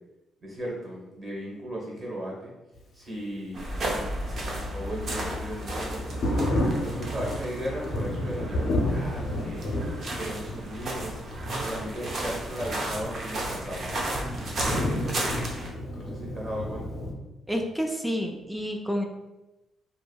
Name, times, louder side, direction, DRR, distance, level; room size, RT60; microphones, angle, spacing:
voice 1, 0.4-2.5 2.9-6.5 6.8-9.7 10.1-11.2 11.6-13.9 14.6-15.3 16.0-16.9, equal, 25° right, -3 dB, 1.1 m, -36 dB
sound 1, 3.5-15.7, right 1 dB, 55° right, 0.6 m, -34 dB
Thunder, 4.3-17.1, left 1 dB, 75° left, 0.6 m, -32 dB
voice 2, 17.5-19.0, equal, 5° right, 3 dB, 0.3 m, -29 dB
2.7 x 2.6 x 2.3 m, 1.0 s
cardioid pair, 90°, 0 cm